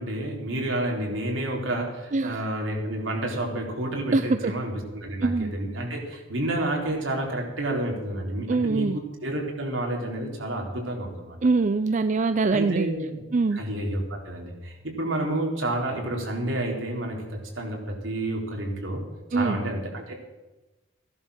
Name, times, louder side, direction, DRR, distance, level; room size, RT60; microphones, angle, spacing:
voice 1, 0.0-11.4 12.5-13.2 13.5-19.0 19.3-20.1, right 1 dB, 70° right, 0 dB, 3.9 m, -30 dB
voice 2, 4.1-4.5 5.2-5.5 8.5-9.0 11.4-12.9 13.3-13.6 19.3-19.6, right 3 dB, 40° right, 11 dB, 0.5 m, -23 dB
16.0 x 11.0 x 6.4 m, 1.1 s
head